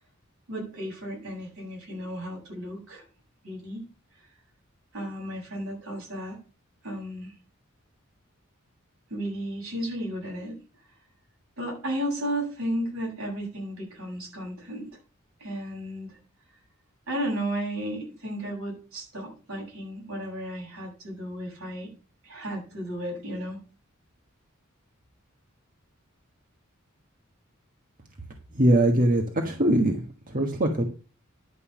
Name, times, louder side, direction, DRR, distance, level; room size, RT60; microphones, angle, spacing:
voice 1, 0.5-3.0 3.4-3.8 4.9-6.4 6.8-7.3 9.1-10.6 11.6-14.9 15.4-16.1 17.1-21.9 22.2-23.6, equal, 80° right, -1 dB, 7.9 m, -34 dB
voice 2, 28.5-30.8, right 1 dB, 40° right, 3 dB, 1.4 m, -22 dB
11.0 x 5.5 x 7.3 m, 0.36 s
head